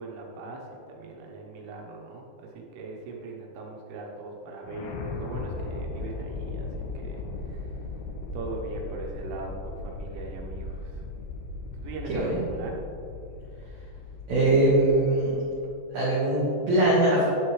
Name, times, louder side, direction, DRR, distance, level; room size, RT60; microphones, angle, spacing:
voice 1, 0.0-7.2 7.5-7.6 8.3-11.0 11.8-12.8, right 3 dB, 80° right, 0 dB, 3.4 m, -39 dB
sound 1, 4.6-15.7, left 2 dB, 80° left, 2.5 m, -37 dB
voice 2, 12.1-12.4 14.3-15.3 15.9-17.3, right 1 dB, 60° right, -8 dB, 1.9 m, -22 dB
9.9 x 7.7 x 3.2 m, 2.5 s
omnidirectional pair, 5.6 m